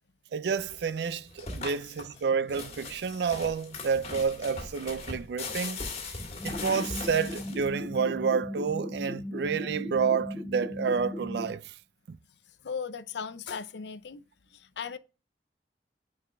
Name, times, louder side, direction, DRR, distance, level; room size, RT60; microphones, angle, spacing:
voice 1, 0.3-5.8 6.4-11.6 12.1-12.2, right 6 dB, 70° right, 0.4 m, -29 dB
sound 1, 0.6-7.9, left 3 dB, 35° left, 1.7 m, -39 dB
sound 2, 6.4-11.5, left 1 dB, 5° left, 2.8 m, -37 dB
voice 2, 12.5-14.2 14.5-15.0, left 6 dB, 80° left, 0.5 m, -38 dB
9.1 x 4.7 x 2.2 m
head